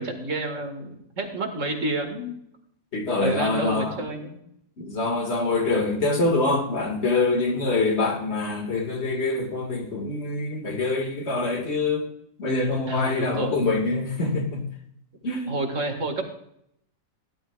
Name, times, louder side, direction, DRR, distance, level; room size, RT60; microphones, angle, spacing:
voice 1, 0.0-2.4 3.2-4.4 7.5-7.7 12.9-13.8 15.5-16.3, right 2 dB, 60° right, 4 dB, 2.1 m, -29 dB
voice 2, 2.9-4.0 4.8-12.1 12.4-14.7 15.2-15.6, left 3 dB, 50° left, 3 dB, 2.1 m, -25 dB
16.5 x 11.5 x 2.4 m, 0.73 s
omnidirectional pair, 1.5 m